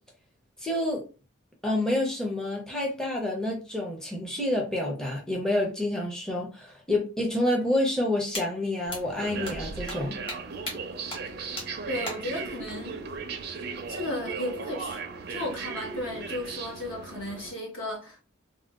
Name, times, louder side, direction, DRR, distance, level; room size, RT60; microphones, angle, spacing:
voice 1, 0.6-1.0 1.6-10.2, left 1 dB, 5° left, 0.5 m, -28 dB
sound 1, 8.3-8.4 8.9-9.0 9.4-9.6 9.9-10.0 10.3-10.4 10.7-10.8 11.1-11.2 11.6-11.7 12.1-12.2, left 1 dB, 25° left, 1.0 m, -34 dB
sound 2, 8.9-17.5, right 4 dB, 50° right, 0.4 m, -37 dB
voice 2, 11.9-13.0 13.9-15.0 15.3-18.2, left 1 dB, 65° left, 1.3 m, -34 dB
3.5 x 2.2 x 2.3 m
head